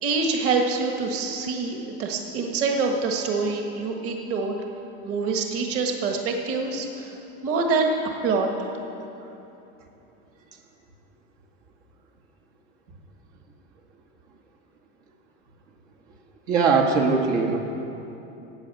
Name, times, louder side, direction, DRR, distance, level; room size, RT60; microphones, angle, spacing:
voice 1, 0.0-4.6 5.0-7.1 7.4-7.9 8.2-8.8, right 4 dB, 45° right, 2 dB, 1.6 m, -25 dB
voice 2, 16.5-17.6, right 4 dB, 85° right, 1 dB, 2.0 m, -20 dB
14.0 x 8.4 x 9.1 m, 3.0 s
supercardioid pair, 145°, 33 cm